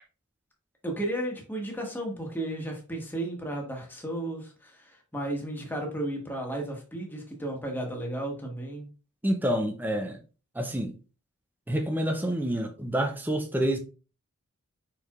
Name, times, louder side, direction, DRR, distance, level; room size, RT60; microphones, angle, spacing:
voice 1, 0.8-8.9, right 1 dB, 10° left, 1.1 m, -34 dB
voice 2, 9.2-10.2 10.6-11.0 11.7-13.8, right 1 dB, 10° right, 0.5 m, -28 dB
4.9 x 4.6 x 2.4 m
head